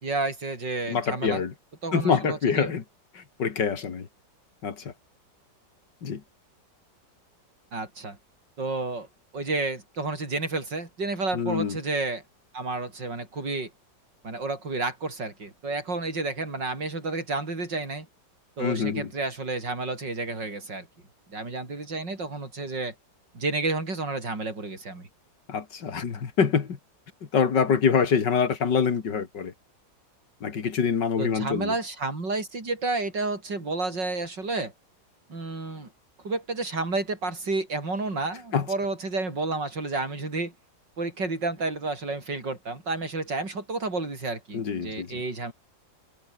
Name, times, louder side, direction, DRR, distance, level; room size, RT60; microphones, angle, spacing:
voice 1, 0.0-1.4 1.8-2.7 7.7-8.2 8.6-9.1 9.3-12.2 12.5-13.7 14.2-18.1 18.6-20.9 21.3-22.9 23.3-25.1 31.2-34.7 35.3-35.9 36.2-40.5 41.0-45.5, right 3 dB, 75° right, 6.0 m, -30 dB
voice 2, 0.9-1.5 1.9-2.8 3.1-4.1 4.6-4.9 6.0-6.2 11.3-11.8 18.6-19.1 25.5-26.8 27.3-29.5 30.4-31.8 38.5-38.7 44.5-45.2, left 6 dB, 70° left, 2.7 m, -25 dB
omnidirectional pair, 1.9 m